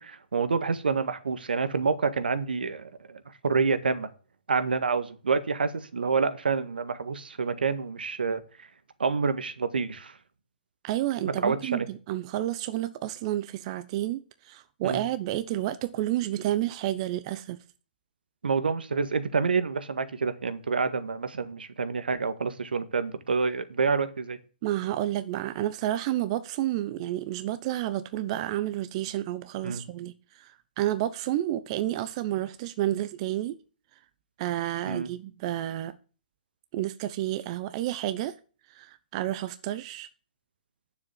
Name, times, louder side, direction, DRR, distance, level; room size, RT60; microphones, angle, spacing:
voice 1, 0.0-4.1 4.5-8.7 9.0-10.2 11.2-11.9 14.8-15.0 18.4-24.4 29.6-29.8 34.9-35.1, right 5 dB, 80° right, 1.7 m, -28 dB
voice 2, 10.8-17.6 24.6-33.6 34.4-36.0 36.7-38.3 38.7-40.1, right 13 dB, 40° right, 0.8 m, -30 dB
10.0 x 7.4 x 8.1 m
hypercardioid pair, 140°, 5 cm